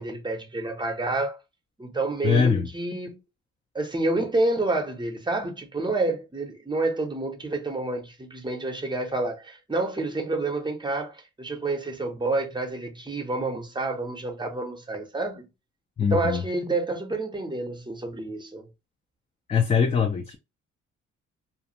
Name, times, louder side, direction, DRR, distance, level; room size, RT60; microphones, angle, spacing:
voice 1, 0.0-1.4 1.8-3.2 3.7-15.5 16.1-18.7, right 2 dB, 15° right, 0.7 m, -28 dB
voice 2, 2.2-2.7 16.0-16.4 19.5-20.4, left 6 dB, 20° left, 0.4 m, -22 dB
2.5 x 2.3 x 2.8 m
cardioid pair, 90°, 30 cm